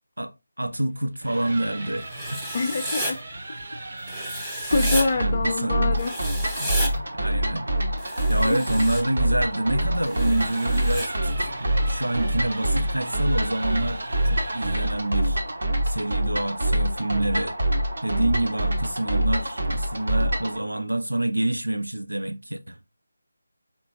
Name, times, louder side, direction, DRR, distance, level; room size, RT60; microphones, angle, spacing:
voice 1, 0.2-2.4 5.2-5.8 6.6-7.7 8.3-11.1 11.6-15.4 15.8-17.6 18.0-22.8, right 1 dB, 85° right, 0.6 m, -27 dB
sound 1, 1.0-5.3 7.9-15.1, right 2 dB, 45° right, 1.0 m, -38 dB
Writing, 2.1-3.1 4.1-5.0 6.0-6.9 8.0-9.0 10.0-11.1, equal, 5° right, 0.7 m, -32 dB
voice 2, 2.5-3.2 4.7-6.1 8.4-8.6, left 3 dB, 35° left, 0.4 m, -25 dB
sound 2, 4.7-20.6, right 1 dB, 65° right, 1.1 m, -25 dB
4.3 x 3.3 x 2.8 m
figure-of-eight pair, 160°, 0 cm